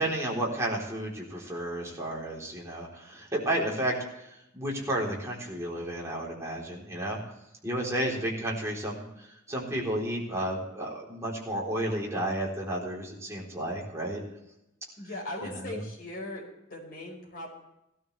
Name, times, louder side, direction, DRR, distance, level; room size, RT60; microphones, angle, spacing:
voice 1, 0.0-4.3 4.5-7.2 7.6-9.1 9.5-14.2 15.4-15.8, right 1 dB, 15° right, -3 dB, 3.9 m, -32 dB
voice 2, 15.0-16.4 16.7-17.5, left 1 dB, 50° left, -1 dB, 5.0 m, -38 dB
16.5 x 13.0 x 3.4 m, 0.85 s
head